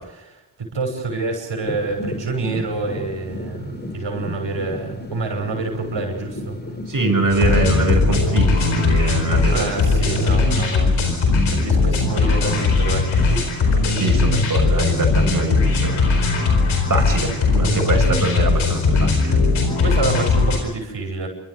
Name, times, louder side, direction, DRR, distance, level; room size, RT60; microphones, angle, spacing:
voice 1, 0.0-6.6 9.5-11.0 11.3-13.8 19.8-21.3, right 3 dB, 65° right, 3 dB, 6.1 m, -27 dB
sound 1, 1.6-10.6, left 2 dB, 20° left, 4.3 m, -33 dB
voice 2, 6.9-9.7 14.0-16.0 16.9-19.4, right 2 dB, 40° right, 2 dB, 6.6 m, -23 dB
sound 2, 7.3-20.6, left 3 dB, 85° left, 4.4 m, -19 dB
28.0 x 13.0 x 9.6 m, 1.0 s
supercardioid pair, 45°, 47 cm